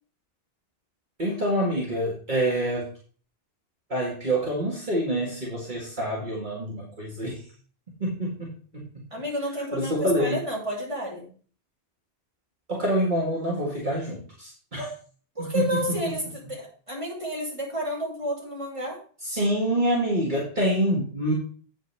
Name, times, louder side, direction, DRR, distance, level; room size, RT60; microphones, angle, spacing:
voice 1, 1.2-2.9 3.9-7.4 8.0-9.0 9.7-10.4 12.7-14.9 15.4-15.6 19.2-21.3, right 1 dB, 50° right, -4 dB, 2.0 m, -26 dB
voice 2, 9.1-11.3 15.3-16.2 16.5-19.0, equal, 30° right, -3 dB, 2.9 m, -30 dB
8.7 x 8.1 x 3.4 m, 0.42 s
omnidirectional pair, 1.0 m